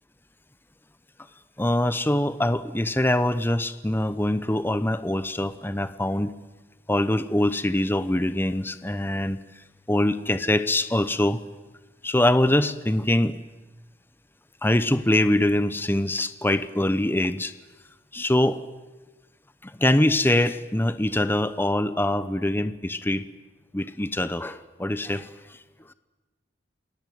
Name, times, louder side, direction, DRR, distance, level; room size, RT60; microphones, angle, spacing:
voice 1, 1.6-6.3 6.9-9.4 9.9-11.4 12.0-13.4 14.6-17.5 18.1-18.6 19.8-23.2 23.7-25.3, left 1 dB, 10° left, 13 dB, 0.9 m, -23 dB
28.5 x 20.5 x 9.3 m, 1.1 s
head